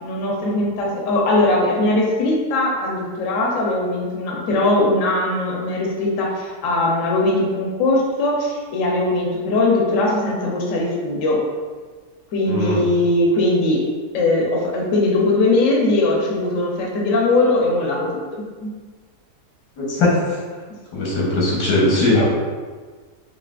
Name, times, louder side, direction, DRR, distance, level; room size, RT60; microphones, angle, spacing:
voice 1, 0.0-11.4 12.3-13.8 14.1-18.7 22.1-22.2, left 2 dB, 60° left, -2 dB, 1.0 m, -20 dB
voice 2, 12.5-12.8 19.8-20.4 20.9-22.2, left 2 dB, 90° left, -5 dB, 1.6 m, -19 dB
4.9 x 2.8 x 2.4 m, 1.5 s
omnidirectional pair, 1.7 m